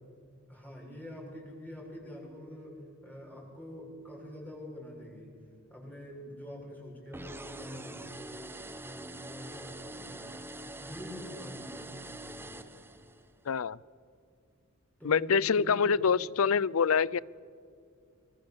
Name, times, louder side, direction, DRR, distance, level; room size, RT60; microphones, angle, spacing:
voice 1, 0.5-5.4 5.7-12.5 15.0-16.0, equal, 10° left, -2 dB, 7.0 m, -45 dB
sound 1, 7.1-13.3, right 1 dB, 10° right, 1.1 m, -44 dB
voice 2, 13.5-13.8 15.0-17.2, left 6 dB, 70° left, 23 dB, 0.5 m, -26 dB
25.0 x 24.0 x 7.3 m, 2.4 s
head